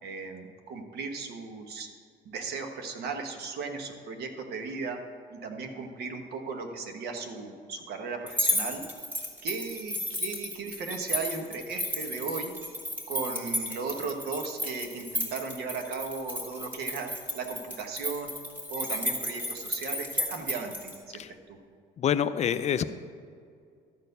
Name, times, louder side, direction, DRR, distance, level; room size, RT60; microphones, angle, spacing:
voice 1, 0.0-1.9 2.2-5.0 5.3-8.8 9.4-12.5 13.1-17.1 17.3-18.4 18.7-21.6, right 4 dB, 70° right, 5 dB, 1.3 m, -36 dB
sound 1, 8.3-20.9, left 1 dB, 10° right, 1.8 m, -33 dB
voice 2, 22.0-22.8, left 9 dB, 40° left, 12 dB, 0.4 m, -27 dB
12.5 x 4.4 x 6.7 m, 2.3 s
cardioid pair, 110°, 17 cm